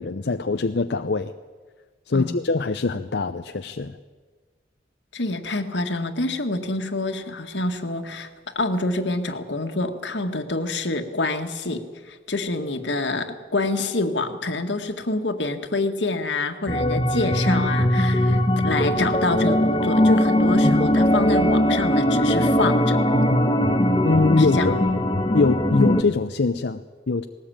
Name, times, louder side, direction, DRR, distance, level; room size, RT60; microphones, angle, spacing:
voice 1, 0.0-1.3 2.1-3.9 24.0-24.8 25.3-27.3, left 3 dB, 70° left, 7 dB, 0.7 m, -23 dB
voice 2, 5.1-23.0 24.4-24.7, left 2 dB, 90° left, 6 dB, 1.9 m, -27 dB
sound 1, 16.7-26.0, left 1 dB, 25° left, 1.2 m, -20 dB
19.5 x 18.5 x 8.8 m, 1.4 s
head